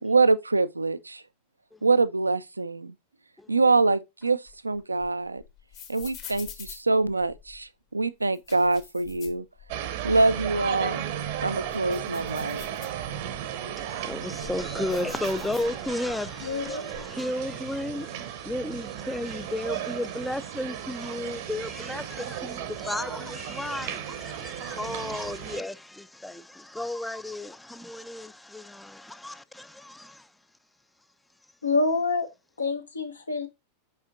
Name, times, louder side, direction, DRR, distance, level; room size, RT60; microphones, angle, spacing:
voice 1, 0.0-1.2 1.8-2.9 3.5-5.4 5.9-9.5 10.0-11.1 11.4-12.6, right 3 dB, 80° right, 0.4 m, -24 dB
sound 1, 4.2-7.6 8.2-10.1 10.4-10.5 11.0-13.4 14.0-16.1 16.4-17.2, left 9 dB, 45° left, 1.2 m, -47 dB
sound 2, 9.7-25.6, right 10 dB, 50° right, 0.7 m, -35 dB
voice 2, 13.8-30.3, left 1 dB, 5° left, 0.4 m, -34 dB
voice 3, 16.4-16.9 31.6-32.3 32.6-33.5, left 3 dB, 75° left, 0.9 m, -26 dB
5.4 x 4.9 x 3.7 m
figure-of-eight pair, 90°, 0 cm